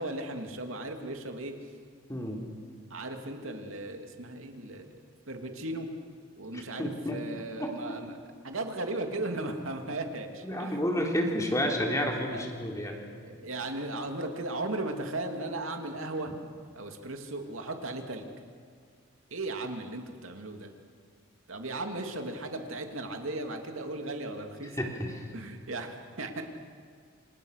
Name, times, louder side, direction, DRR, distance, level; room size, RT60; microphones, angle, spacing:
voice 1, 0.0-1.5 2.9-4.9 5.3-5.9 6.4-8.2 8.4-10.8 12.3-12.5 13.2-16.3 16.7-18.3 19.3-20.7 21.5-24.8 25.3-26.4, right 2 dB, 75° right, 4 dB, 2.7 m, -36 dB
voice 2, 2.1-2.4 6.5-7.2 7.6-8.0 10.4-13.0 24.8-25.2, equal, 15° left, 1 dB, 3.6 m, -31 dB
28.5 x 28.0 x 6.6 m, 2.1 s
head